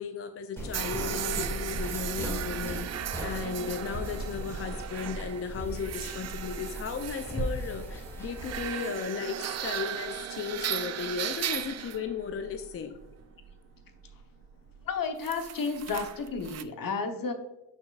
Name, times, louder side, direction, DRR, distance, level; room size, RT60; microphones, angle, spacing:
voice 1, 0.0-13.0, left 6 dB, 30° left, 8 dB, 0.5 m, -35 dB
sound 1, 0.6-8.6, right 1 dB, 5° left, 2.2 m, -37 dB
sound 2, 0.7-16.6, right 10 dB, 40° right, 0.4 m, -37 dB
voice 2, 14.9-17.3, left 5 dB, 50° left, 7 dB, 1.0 m, -32 dB
7.2 x 5.9 x 2.4 m, 1.0 s
supercardioid pair, 55°, 44 cm